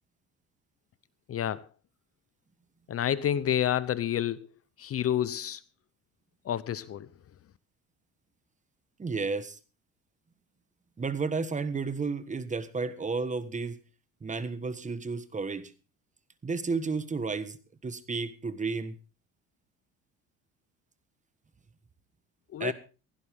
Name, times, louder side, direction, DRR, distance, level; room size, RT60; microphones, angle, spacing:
voice 1, 1.3-1.6 2.9-4.4 4.8-5.6 6.4-7.1 22.5-22.7, left 10 dB, 45° left, 0.8 m, -29 dB
voice 2, 9.0-9.6 11.0-13.8 14.2-15.7 16.4-17.6 17.8-19.0 22.6-22.7, right 4 dB, 20° right, 1.4 m, -32 dB
17.0 x 15.5 x 3.6 m
cardioid pair, 105°, 33 cm